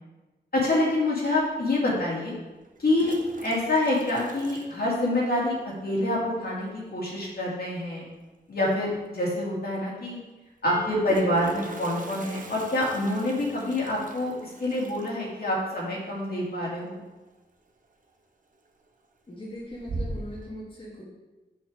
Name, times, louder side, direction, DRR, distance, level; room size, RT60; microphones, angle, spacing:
voice 1, 0.5-2.3 2.8-3.1 3.4-5.6 5.8-8.1 8.5-10.2 10.6-17.0, left 1 dB, 60° left, -5 dB, 2.4 m, -26 dB
Toilet flush, 1.3-1.4 2.6-5.5 5.7-5.8 6.1-6.2 6.5-6.9 8.6-8.7 9.0-9.1 10.7-17.4 17.7-18.1 18.5-19.1 19.5-20.5, right 2 dB, 50° right, 0.8 m, -41 dB
sound 1, 10.7-14.4, right 6 dB, 85° left, 1.9 m, -42 dB
voice 2, 19.3-21.1, equal, 30° left, -7 dB, 1.5 m, -40 dB
7.1 x 6.6 x 3.6 m, 1.1 s
wide cardioid pair, 120°, 18 cm